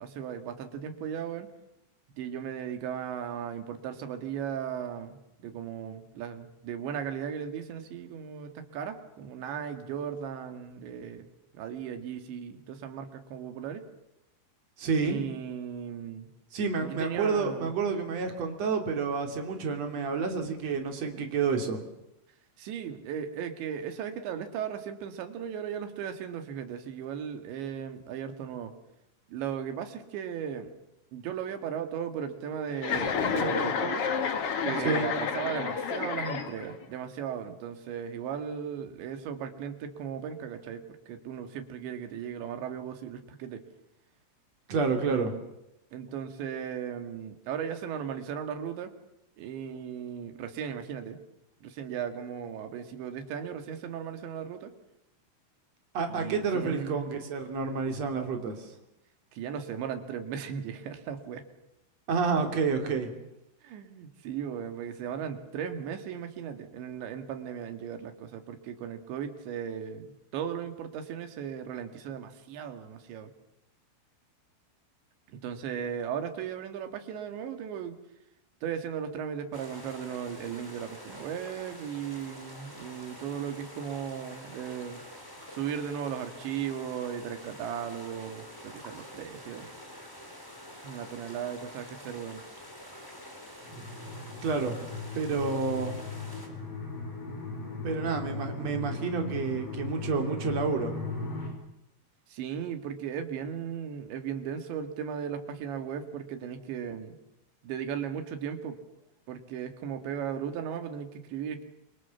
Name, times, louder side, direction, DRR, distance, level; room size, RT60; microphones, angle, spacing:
voice 1, 0.0-1.5 2.2-11.3 11.5-13.8 15.1-16.3 16.8-17.7 22.6-28.7 29.3-30.7 31.1-34.0 34.6-40.8 41.1-43.6 45.1-45.3 45.9-48.9 49.4-51.2 51.6-54.7 56.1-57.2 59.3-61.5 63.6-73.3 75.3-78.0 78.6-85.0 85.5-89.7 90.8-92.4 102.3-107.2 107.6-108.8 109.3-111.6, right 8 dB, 65° right, 7 dB, 4.2 m, -36 dB
voice 2, 14.8-15.2 16.5-21.8 34.8-35.1 44.7-45.3 55.9-58.7 62.1-63.1 94.4-94.8 95.1-96.0 97.8-100.9, right 5 dB, 40° right, 5 dB, 3.6 m, -29 dB
Chuckle chortle, 32.8-36.8, left 6 dB, 80° left, 1.3 m, -30 dB
sound 1, 79.5-96.5, equal, 5° left, 3.5 m, -47 dB
sound 2, 93.6-101.5, left 3 dB, 40° left, 6.4 m, -37 dB
28.5 x 24.0 x 7.2 m, 0.87 s
omnidirectional pair, 5.7 m